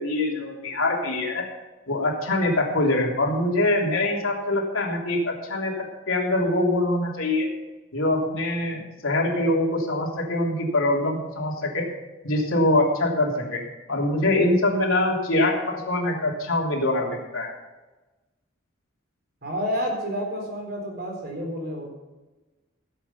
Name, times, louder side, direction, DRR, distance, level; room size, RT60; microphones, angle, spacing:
voice 1, 0.0-1.4 1.9-7.5 7.9-11.9 12.2-13.6 13.9-17.6, left 1 dB, 85° left, -1 dB, 3.4 m, -24 dB
voice 2, 19.4-21.9, equal, 50° right, 1 dB, 4.1 m, -29 dB
17.0 x 8.4 x 5.7 m, 1.1 s
head